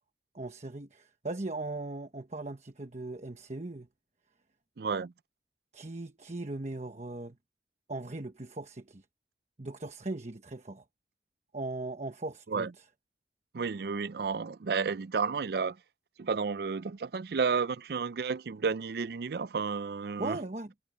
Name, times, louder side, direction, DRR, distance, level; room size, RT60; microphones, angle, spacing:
voice 1, 0.3-3.9 5.7-7.4 7.9-9.0 9.6-10.8 11.5-12.8 20.2-20.7, right 2 dB, 40° right, 1.1 m, -38 dB
voice 2, 4.8-5.1 12.5-12.7 13.5-15.8 16.2-20.4, right 5 dB, 60° right, 0.4 m, -31 dB
head